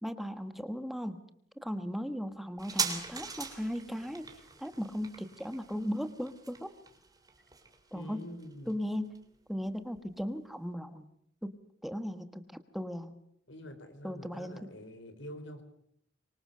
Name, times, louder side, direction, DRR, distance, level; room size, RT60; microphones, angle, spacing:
voice 1, 0.0-1.2 1.6-4.3 4.6-6.7 7.9-8.2 8.7-9.1 9.5-11.1 11.4-11.6 11.8-13.1 14.0-14.7, equal, ahead, 9 dB, 1.3 m, -37 dB
sound 1, 2.6-9.7 10.0-10.1, right 5 dB, 20° right, 3.4 m, -41 dB
voice 2, 7.9-8.8 13.5-15.6, equal, 90° left, 9 dB, 4.2 m, -46 dB
25.5 x 24.0 x 6.7 m, 0.71 s
head